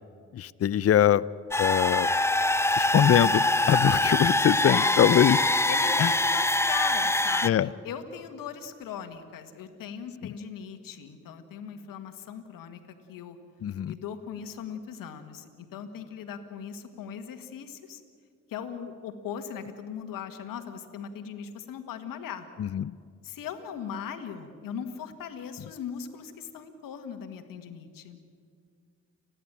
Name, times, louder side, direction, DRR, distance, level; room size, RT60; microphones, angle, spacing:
voice 1, 0.3-1.2 1.6-2.1 2.8-5.4 6.0-6.1 7.4-7.7 13.6-13.9 22.6-22.9, left 10 dB, 45° left, 20 dB, 0.6 m, -23 dB
sound 1, 1.5-7.5, left 2 dB, 10° left, 0.7 m, -24 dB
voice 2, 4.6-4.9 5.7-12.8 13.1-13.4 13.9-18.0 18.5-22.5 23.2-28.2, left 7 dB, 80° left, 9 dB, 1.9 m, -39 dB
30.0 x 11.0 x 8.9 m, 2.1 s
supercardioid pair, 50°, 33 cm